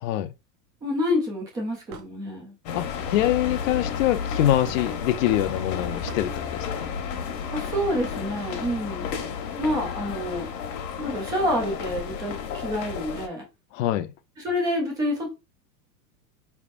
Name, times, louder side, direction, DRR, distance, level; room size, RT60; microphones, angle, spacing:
voice 1, 0.0-0.3 2.7-6.7 13.7-14.1, left 13 dB, 50° left, 0.5 m, -24 dB
voice 2, 0.8-2.5 7.5-9.1 9.6-10.5 11.0-13.4 14.4-15.3, left 1 dB, 10° right, 0.3 m, -28 dB
Hammer / Wood, 1.9-2.1 3.2-3.4 4.6-4.9 6.1-6.3, right 6 dB, 35° right, 0.7 m, -41 dB
sound 1, 2.7-13.3, left 6 dB, 80° left, 1.2 m, -32 dB
4.8 x 3.5 x 2.4 m
supercardioid pair, 155°, 50 cm